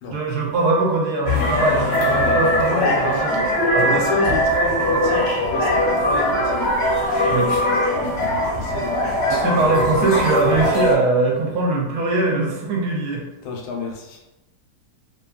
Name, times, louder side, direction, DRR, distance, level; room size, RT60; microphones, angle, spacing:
voice 1, 0.1-3.5 3.7-4.0 7.3-7.6 9.3-13.2, right 2 dB, 70° right, -1 dB, 1.1 m, -21 dB
sound 1, 1.2-10.9, equal, 50° left, 0.7 m, -20 dB
voice 2, 2.1-3.3 3.8-6.6 8.2-9.2 13.4-14.2, left 3 dB, 80° left, 1 dB, 1.2 m, -29 dB
2.8 x 2.5 x 2.3 m, 1.0 s
omnidirectional pair, 1.8 m